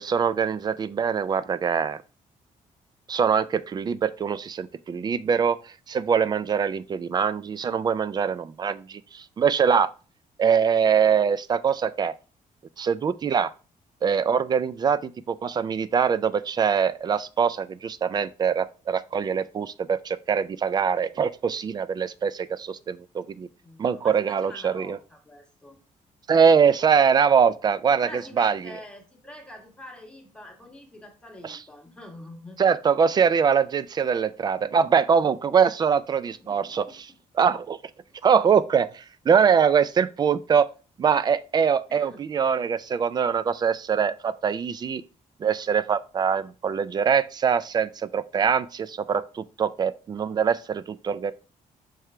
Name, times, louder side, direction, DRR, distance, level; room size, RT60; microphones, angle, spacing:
voice 1, 0.0-2.0 3.1-5.6 5.9-9.9 10.4-12.1 12.8-13.5 14.0-23.5 23.8-25.0 26.3-28.1 28.4-28.7 31.4-31.6 32.6-37.1 37.4-37.8 38.2-40.7 41.0-45.0 45.4-51.3, right 7 dB, 30° right, 0.3 m, -23 dB
voice 2, 23.6-25.8 28.0-32.6 36.5-37.0 38.1-38.2 41.9-42.2, left 1 dB, 5° left, 1.4 m, -45 dB
6.0 x 4.8 x 3.3 m
cardioid pair, 155°, 14 cm